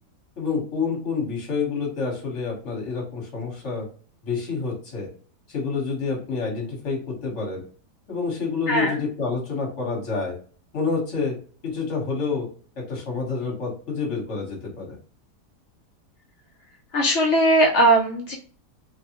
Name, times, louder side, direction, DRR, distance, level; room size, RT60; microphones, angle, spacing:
voice 1, 0.4-3.8 4.2-5.1 5.5-7.6 8.1-10.3 10.7-11.3 11.6-12.5 12.9-15.0, left 4 dB, 50° left, -2 dB, 1.4 m, -28 dB
voice 2, 8.7-9.0 16.9-18.4, right 1 dB, 75° left, 1 dB, 0.6 m, -19 dB
3.0 x 2.0 x 2.9 m, 0.43 s
omnidirectional pair, 1.8 m